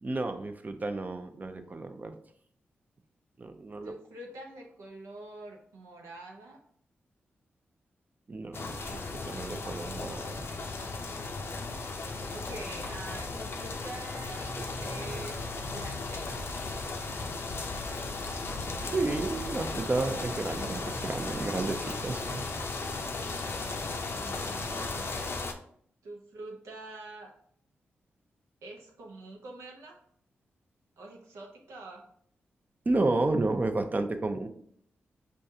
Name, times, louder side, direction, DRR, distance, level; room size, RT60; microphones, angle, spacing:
voice 1, 0.0-2.2 3.4-3.9 8.3-10.4 18.8-22.4 32.9-34.5, right 2 dB, 35° right, 7 dB, 0.6 m, -31 dB
voice 2, 3.8-6.6 11.6-14.5 14.8-16.3 24.1-25.1 26.0-27.3 28.6-30.0 31.0-32.0, right 2 dB, 85° right, 0 dB, 0.8 m, -45 dB
sound 1, 8.5-25.5, left 3 dB, 60° left, 0.5 m, -36 dB
5.2 x 2.4 x 2.7 m, 0.63 s
supercardioid pair, 45°, 5 cm